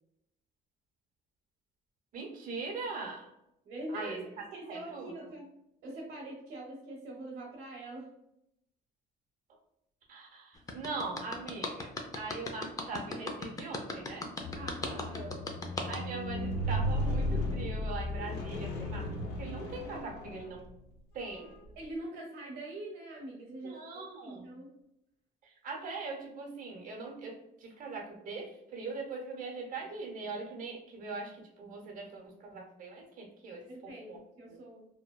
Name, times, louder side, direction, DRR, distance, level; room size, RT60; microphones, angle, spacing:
voice 1, 2.1-3.3 3.9-5.3 10.1-14.3 15.9-19.1 19.4-20.7 21.1-21.5 23.6-24.5 25.4-34.2, right 3 dB, 50° right, 0 dB, 0.9 m, -41 dB
voice 2, 3.6-5.4 5.8-8.1 14.5-15.4 21.8-23.8 24.2-24.7 33.7-34.9, right 1 dB, 85° right, -3 dB, 0.7 m, -43 dB
sound 1, 10.7-16.0, left 3 dB, 20° left, 0.4 m, -37 dB
Squeak, 14.4-20.8 21.5-21.7, left 1 dB, 85° left, 0.5 m, -35 dB
2.7 x 2.1 x 2.2 m, 0.81 s
cardioid pair, 110°, 17 cm